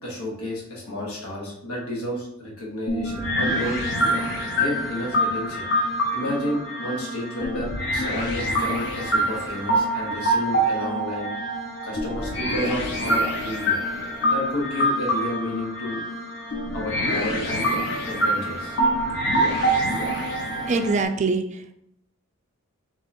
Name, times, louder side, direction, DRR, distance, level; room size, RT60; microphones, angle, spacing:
voice 1, 0.0-3.8 4.5-11.3 11.8-16.0 16.7-18.8, left 1 dB, 85° left, -2 dB, 1.3 m, -31 dB
sound 1, 2.9-21.1, right 1 dB, 55° left, 1.0 m, -25 dB
voice 2, 20.7-21.7, right 3 dB, 30° right, 8 dB, 0.3 m, -24 dB
3.7 x 2.9 x 4.2 m, 0.75 s
head